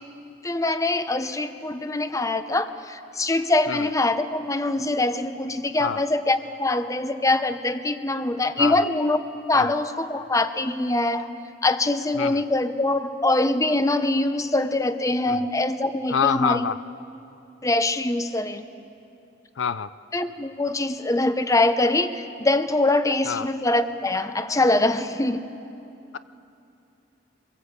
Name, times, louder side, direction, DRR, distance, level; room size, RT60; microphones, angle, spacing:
voice 1, 0.4-11.3 11.6-16.7 17.6-18.7 20.1-25.4, left 2 dB, 15° left, 10 dB, 0.8 m, -23 dB
voice 2, 16.1-16.8 19.6-19.9 23.3-23.5, left 6 dB, 80° left, 14 dB, 0.5 m, -26 dB
25.5 x 21.5 x 8.1 m, 2.7 s
head